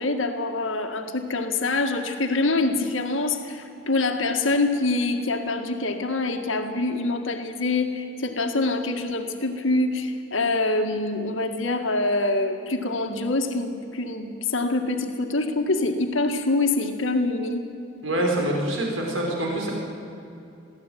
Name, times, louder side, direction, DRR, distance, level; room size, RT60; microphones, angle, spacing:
voice 1, 0.0-17.7, left 2 dB, 85° left, 5 dB, 1.8 m, -25 dB
voice 2, 18.0-19.7, right 1 dB, 85° right, -1 dB, 4.9 m, -25 dB
22.5 x 15.5 x 9.3 m, 2.7 s
head